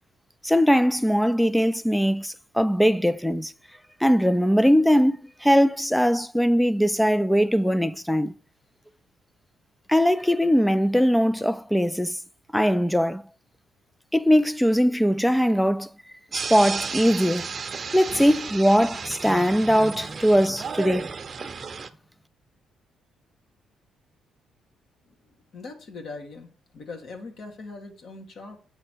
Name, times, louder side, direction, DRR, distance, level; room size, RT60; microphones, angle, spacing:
voice 1, 0.4-3.5 4.0-8.3 9.9-12.2 12.5-13.2 14.1-15.9 16.3-17.5 17.9-21.1 21.4-21.5, equal, 5° left, 0.4 m, -21 dB
sound 1, 16.3-21.9, right 5 dB, 40° right, 0.7 m, -33 dB
voice 2, 25.5-26.5 26.7-28.6, left 3 dB, 60° left, 1.8 m, -40 dB
7.9 x 5.6 x 4.4 m
cardioid pair, 90°, 0 cm